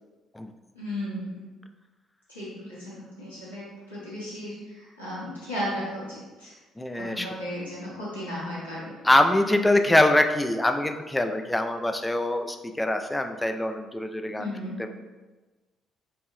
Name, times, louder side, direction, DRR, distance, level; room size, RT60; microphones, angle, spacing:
voice 1, 0.7-1.5 2.3-6.5 6.9-8.9 14.4-14.8, equal, 85° left, -10 dB, 1.3 m, -35 dB
voice 2, 6.8-7.4 9.0-14.5 14.8-14.9, left 1 dB, 10° left, 6 dB, 0.4 m, -24 dB
4.5 x 2.7 x 3.0 m, 1.2 s
figure-of-eight pair, 45°, 0 cm